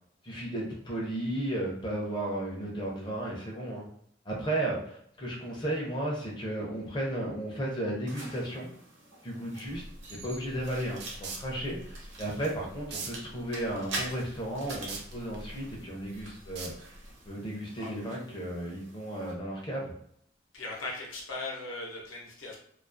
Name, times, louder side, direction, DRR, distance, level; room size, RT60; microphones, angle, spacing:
voice 1, 0.2-3.9 4.3-8.7 9.2-9.8 10.1-16.7 17.3-19.9, right 1 dB, 25° left, -3 dB, 0.4 m, -34 dB
sound 1, 8.1-19.3, right 2 dB, 75° right, 0.8 m, -45 dB
sound 2, 9.6-17.3, right 3 dB, 55° right, 0.4 m, -44 dB
voice 2, 20.5-22.6, left 2 dB, 85° left, -2 dB, 0.7 m, -38 dB
2.3 x 2.3 x 2.4 m, 0.68 s
head